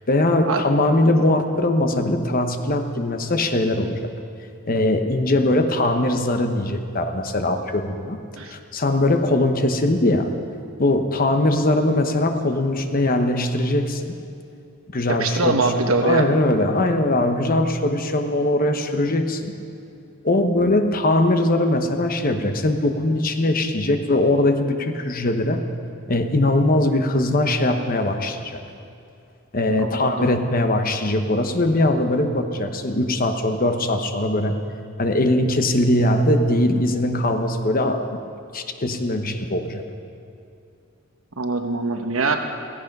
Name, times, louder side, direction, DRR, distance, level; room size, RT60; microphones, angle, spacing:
voice 1, 0.1-4.1 4.7-8.2 8.4-10.3 10.8-14.2 14.9-19.5 20.2-25.6 26.1-28.6 29.5-34.6 35.0-38.2 38.5-39.8, left 1 dB, 40° left, 7 dB, 1.0 m, -21 dB
voice 2, 15.1-16.3 29.8-30.3 41.4-42.4, right 3 dB, 70° right, 5 dB, 1.2 m, -23 dB
16.5 x 16.0 x 5.4 m, 2.5 s
head